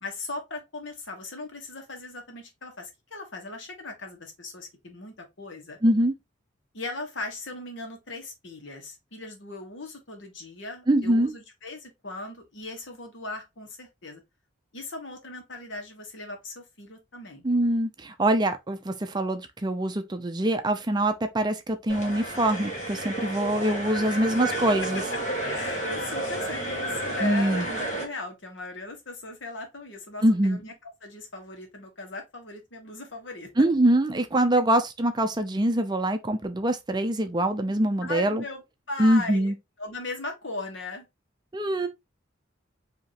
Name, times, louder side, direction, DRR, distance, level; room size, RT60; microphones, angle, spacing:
voice 1, 0.0-5.8 6.7-14.2 14.7-17.5 24.1-24.2 24.5-24.6 24.9-25.0 25.4-30.7 31.0-33.5 38.0-38.6 38.9-39.5 39.8-41.0, left 2 dB, 70° left, 1.4 m, -38 dB
voice 2, 5.8-6.1 10.9-11.3 17.4-25.0 27.2-27.7 30.2-30.6 33.6-38.4 39.0-39.5 41.5-41.9, right 1 dB, 20° right, 0.5 m, -24 dB
sound 1, 21.9-28.0, right 1 dB, 40° left, 1.7 m, -31 dB
5.2 x 2.9 x 2.9 m
head